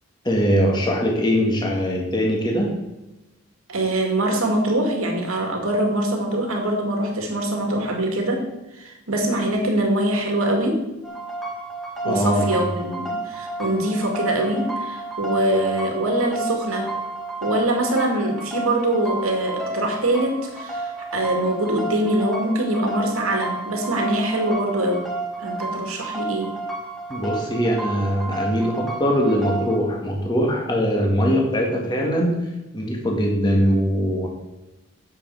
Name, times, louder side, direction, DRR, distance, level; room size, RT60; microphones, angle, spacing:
voice 1, 0.2-2.7 12.0-12.4 27.1-32.4 32.7-34.3, equal, 20° left, 0 dB, 2.0 m, -21 dB
voice 2, 3.7-10.9 12.0-16.9 17.4-25.1 25.4-26.6, right 1 dB, 85° right, 2 dB, 2.3 m, -23 dB
sound 1, 11.0-29.8, right 2 dB, ahead, 1.5 m, -31 dB
10.5 x 7.7 x 4.8 m, 1.0 s
head